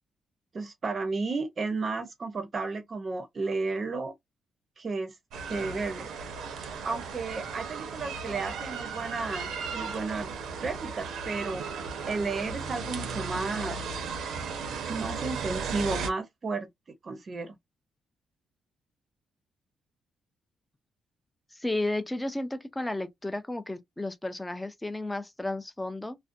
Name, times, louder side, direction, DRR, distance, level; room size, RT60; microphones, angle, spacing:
voice 1, 0.5-4.1 4.8-5.1 5.5-6.1 6.8-10.3 10.6-11.7 12.1-13.8 14.9-16.7 17.0-17.6, right 3 dB, 35° right, 0.6 m, -33 dB
sound 1, 5.3-16.1, right 5 dB, 85° right, 0.7 m, -36 dB
voice 2, 21.5-26.2, left 2 dB, 10° left, 0.4 m, -33 dB
2.5 x 2.1 x 2.5 m
cardioid pair, 125°, 0 cm